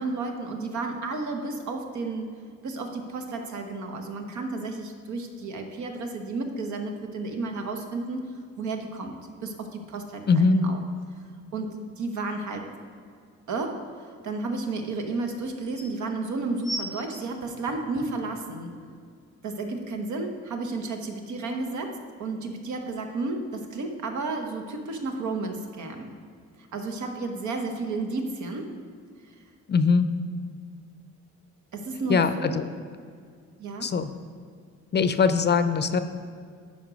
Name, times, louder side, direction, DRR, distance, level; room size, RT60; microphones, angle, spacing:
voice 1, 0.0-2.3 2.6-9.2 9.4-10.8 11.5-12.7 13.5-13.8 14.2-18.7 19.4-26.1 26.7-28.7 31.7-32.6 33.6-33.9, right 3 dB, 70° right, 4 dB, 1.1 m, -32 dB
voice 2, 10.3-10.6 29.7-30.1 32.1-32.6 33.8-34.1 34.9-36.0, left 5 dB, 35° left, 11 dB, 0.5 m, -21 dB
sound 1, 13.3-13.4 15.0-15.1 15.4-15.9 16.6-18.3 19.0-19.1, right 1 dB, 25° right, 1.4 m, -36 dB
9.5 x 5.4 x 5.1 m, 2.1 s
cardioid pair, 90°, 30 cm